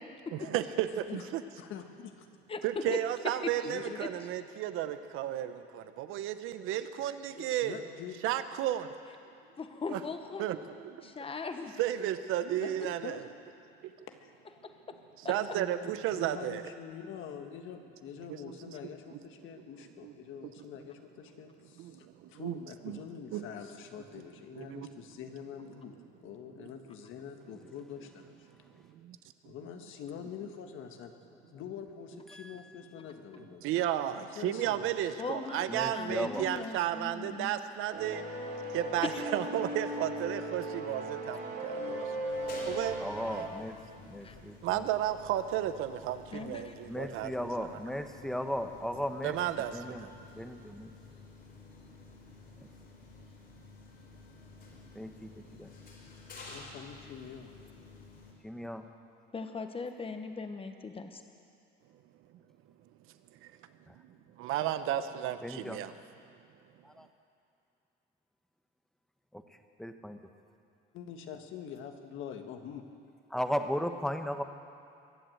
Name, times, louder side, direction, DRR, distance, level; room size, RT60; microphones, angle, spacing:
voice 1, 0.3-1.4 2.6-7.8 8.2-8.9 9.9-10.0 10.4-11.1 11.8-13.2 13.8-13.9 15.2-16.6 18.3-18.5 19.1-19.2 19.8-20.1 21.8-23.0 23.3-23.4 24.5-24.9 26.6-26.7 28.8-29.2 29.4-29.5 33.6-38.2 38.7-42.1 42.7-43.0 44.6-47.7 49.2-50.1 63.4-63.5 63.9-65.9, right 12 dB, 80° right, 11 dB, 0.9 m, -33 dB
voice 2, 1.6-2.3 2.8-3.0 3.6-4.0 7.4-8.2 12.6-12.7 13.0-13.2 14.1-14.3 16.1-22.0 22.3-25.9 26.2-28.5 29.4-31.1 31.4-33.7 34.1-35.0 56.5-57.5 70.9-72.8, left 8 dB, 75° left, 6 dB, 1.5 m, -45 dB
voice 3, 2.5-3.0 3.4-3.7 4.0-4.1 9.6-10.5 11.0-11.7 14.6-15.0 15.2-15.3 35.2-37.5 39.0-39.2 44.2-44.3 46.3-46.7 59.3-61.2, left 4 dB, 25° left, 7 dB, 1.2 m, -39 dB
voice 4, 32.3-32.7 35.6-36.5 43.0-43.8 44.1-44.9 46.9-49.4 49.7-50.1 50.3-50.9 54.9-55.3 55.6-55.7 58.4-58.9 63.9-64.0 65.4-65.8 66.8-67.1 69.3-69.4 69.8-70.2 73.3-74.4, equal, ahead, 6 dB, 1.1 m, -36 dB
sound 1, 37.9-43.5, right 1 dB, 55° right, 3.7 m, -37 dB
sound 2, 42.3-58.3, left 3 dB, 50° left, 4.6 m, -51 dB
23.0 x 7.9 x 7.8 m, 2.6 s
cardioid pair, 100°, 21 cm